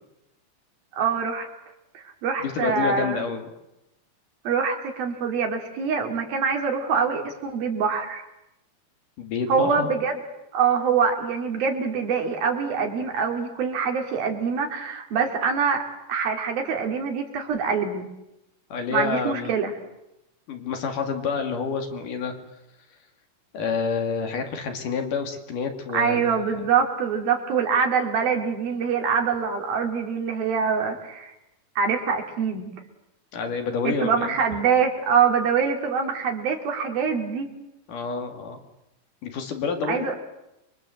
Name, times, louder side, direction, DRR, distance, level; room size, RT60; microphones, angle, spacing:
voice 1, 1.0-1.5 1.9-3.2 4.4-8.2 9.5-10.2 10.5-18.1 18.9-19.7 25.9-31.3 31.8-32.7 33.8-37.5 39.9-40.1, right 6 dB, 75° right, 3 dB, 4.7 m, -24 dB
voice 2, 2.4-3.5 9.2-9.9 18.7-19.6 20.5-22.4 23.5-26.4 33.3-34.4 37.9-38.6 39.2-40.1, left 5 dB, 60° left, 5 dB, 3.8 m, -28 dB
29.5 x 23.5 x 7.9 m, 0.89 s
omnidirectional pair, 4.3 m